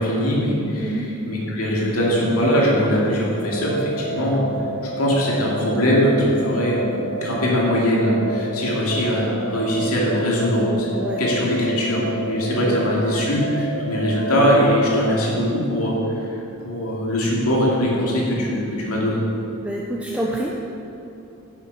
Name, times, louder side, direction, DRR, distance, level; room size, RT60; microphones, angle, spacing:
voice 1, 0.0-4.5 4.8-6.9 7.2-10.9 11.2-16.0 16.6-19.2, equal, 85° left, -4 dB, 2.4 m, -21 dB
voice 2, 0.8-1.1 10.9-11.2 11.7-11.8 12.7-13.0 19.6-20.5, right 1 dB, 5° right, -3 dB, 0.6 m, -28 dB
sound 1, 3.4-15.3, right 1 dB, 40° left, 1.7 m, -30 dB
10.0 x 7.4 x 5.4 m, 2.9 s
head